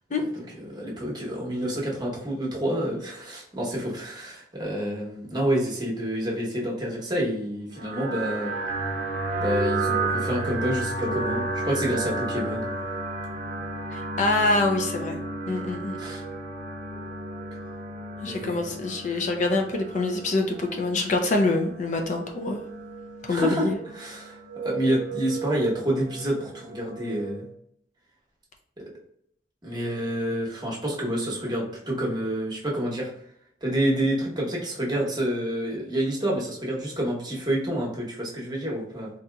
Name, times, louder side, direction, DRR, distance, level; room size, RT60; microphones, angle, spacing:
voice 1, 0.5-8.5 9.4-12.7 16.0-16.2 18.2-18.8 23.3-23.7 24.0-27.5 28.8-28.9 29.6-33.1 33.6-39.1, right 1 dB, 25° right, -3 dB, 0.9 m, -28 dB
sound 1, 7.8-27.5, right 2 dB, 45° right, 0.6 m, -33 dB
voice 2, 13.9-15.2 15.5-16.0 18.2-22.6 23.2-23.8, left 2 dB, 45° left, 4 dB, 0.4 m, -25 dB
3.8 x 2.7 x 2.3 m, 0.70 s
head